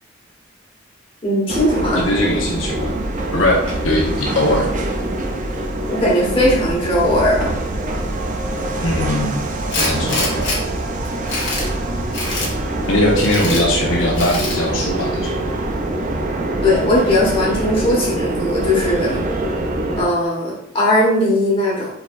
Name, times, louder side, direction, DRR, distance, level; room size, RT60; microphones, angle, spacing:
voice 1, 1.2-2.0 5.9-7.5 16.6-19.2 20.0-21.9, left 1 dB, 30° left, -5 dB, 1.5 m, -18 dB
sound 1, 1.5-20.1, right 1 dB, 40° right, 0.5 m, -24 dB
voice 2, 1.9-2.9 3.3-4.7 8.8-9.4 9.7-10.3 12.9-15.4, left 1 dB, 85° left, -2 dB, 1.0 m, -20 dB
Tools, 9.7-10.6 11.0-11.7 12.1-12.5 13.2-13.6 14.1-14.6, left 3 dB, 65° left, 1.3 m, -24 dB
4.6 x 4.0 x 2.6 m, 0.74 s
head